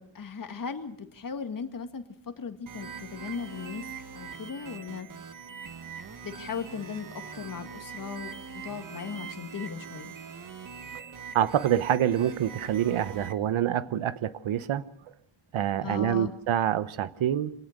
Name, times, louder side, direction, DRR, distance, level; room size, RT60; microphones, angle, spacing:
voice 1, 0.0-3.9 4.1-5.1 6.2-10.1 15.8-16.3, left 6 dB, 45° left, 1.9 m, -37 dB
sound 1, 2.7-13.3, right 6 dB, 40° right, 1.6 m, -42 dB
voice 2, 11.3-14.8 15.5-17.5, right 10 dB, 75° right, 1.0 m, -26 dB
26.0 x 18.5 x 6.6 m
wide cardioid pair, 145°, 48 cm